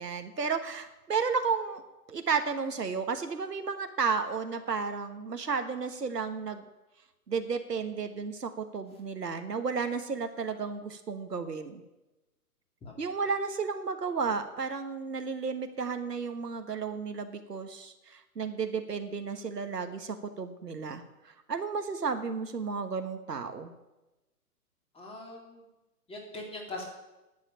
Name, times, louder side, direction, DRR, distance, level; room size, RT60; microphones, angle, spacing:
voice 1, 0.0-1.8 2.1-6.6 7.3-11.8 13.0-23.7, right 5 dB, 85° right, 8 dB, 1.4 m, -33 dB
voice 2, 24.9-25.6 26.1-26.9, left 2 dB, 10° left, 0 dB, 2.8 m, -41 dB
11.0 x 7.9 x 8.7 m, 1.0 s
figure-of-eight pair, 120°, 47 cm